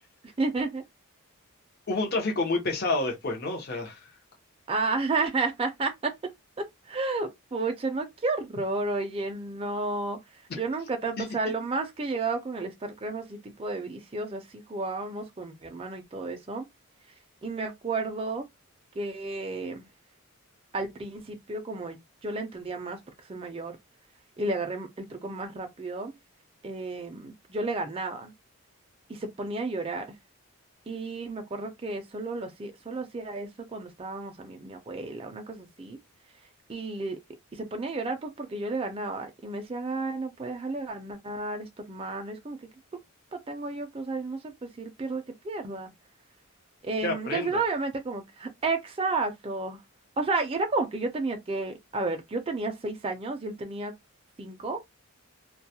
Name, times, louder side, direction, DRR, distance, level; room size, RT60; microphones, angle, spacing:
voice 1, 0.4-0.8 4.7-6.1 6.9-16.7 17.4-18.5 19.0-19.9 20.7-23.0 23.3-23.8 24.4-26.1 26.6-28.3 29.1-30.2 30.9-36.0 36.7-37.2 37.5-42.6 43.3-45.9 46.8-49.8 50.2-53.9 54.4-54.8, right 3 dB, 25° right, 0.4 m, -32 dB
voice 2, 1.9-4.0 11.2-11.3 47.0-47.6, left 2 dB, 45° left, 0.7 m, -29 dB
2.2 x 2.0 x 2.7 m
head